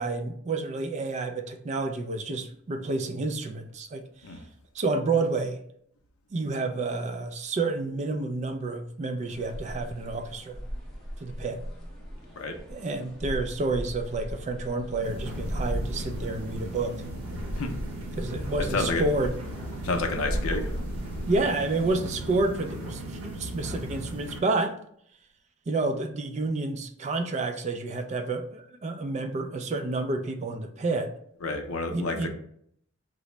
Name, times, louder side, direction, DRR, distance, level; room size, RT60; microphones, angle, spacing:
voice 1, 0.0-4.0 4.7-5.6 6.3-10.6 11.2-11.6 12.7-17.0 18.2-19.3 21.3-24.8 25.7-31.1 31.9-32.3, right 3 dB, 35° right, 7 dB, 0.3 m, -29 dB
sound 1, 9.3-22.0, equal, ahead, 0.8 m, -37 dB
sound 2, 15.0-24.4, right 1 dB, 80° right, 0.7 m, -37 dB
voice 2, 18.6-19.0 19.8-20.7 31.4-32.3, left 3 dB, 90° left, 5 dB, 0.5 m, -29 dB
3.8 x 2.0 x 3.2 m, 0.67 s
head